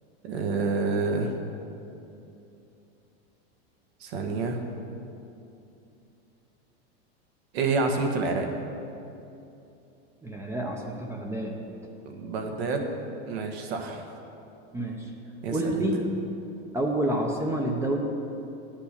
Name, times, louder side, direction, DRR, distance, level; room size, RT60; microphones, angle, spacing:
voice 1, 0.2-1.3 4.0-4.6 7.5-8.5 12.1-12.9 13.3-14.0 15.4-15.8, right 3 dB, 75° right, 4 dB, 1.6 m, -28 dB
voice 2, 10.2-11.6 14.7-15.1 15.5-16.1 16.7-18.0, right 1 dB, 10° right, 1 dB, 0.6 m, -28 dB
10.5 x 8.4 x 6.6 m, 2.8 s
supercardioid pair, 160°, 32 cm